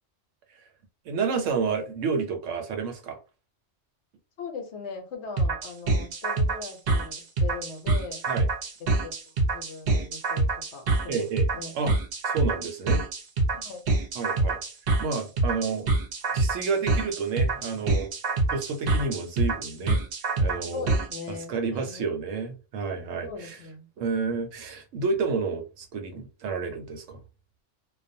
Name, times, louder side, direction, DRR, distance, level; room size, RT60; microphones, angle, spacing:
voice 1, 1.1-3.2 8.3-8.5 11.1-11.5 11.7-12.0 12.2-13.0 14.2-14.6 15.0-15.9 16.3-18.1 18.5-20.0 20.4-20.9 21.3-23.6 24.0-27.2, right 5 dB, 90° right, 1.0 m, -30 dB
voice 2, 4.4-8.2 8.8-9.2 9.5-11.8 13.5-13.9 20.7-22.2 23.2-23.9, left 5 dB, 70° left, 0.9 m, -40 dB
sound 1, 5.4-21.2, right 2 dB, 60° right, 0.7 m, -25 dB
2.4 x 2.2 x 2.6 m
omnidirectional pair, 1.3 m